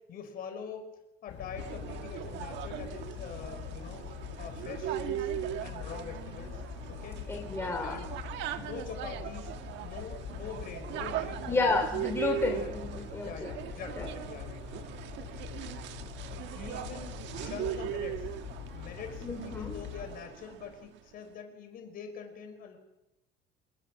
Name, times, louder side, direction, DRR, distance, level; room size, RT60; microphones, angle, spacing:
voice 1, 0.1-0.9 1.2-5.3 5.6-6.6 6.9-7.2 7.8-8.1 8.5-9.6 9.8-11.8 12.5-12.7 13.2-14.9 15.2-15.3 15.6-15.7 16.5-18.3 18.7-22.8, left 6 dB, 45° left, 5 dB, 5.5 m, -44 dB
sound 1, 1.3-20.2, left 8 dB, 60° left, 6.8 m, -43 dB
sound 2, 1.6-20.8, right 12 dB, 60° right, 1.5 m, -39 dB
voice 2, 7.3-8.0 8.5-8.7 11.5-13.5 14.0-14.1 19.2-19.7, left 3 dB, 10° left, 2 dB, 3.2 m, -31 dB
29.5 x 19.5 x 6.4 m, 0.96 s
cardioid pair, 170°, 21 cm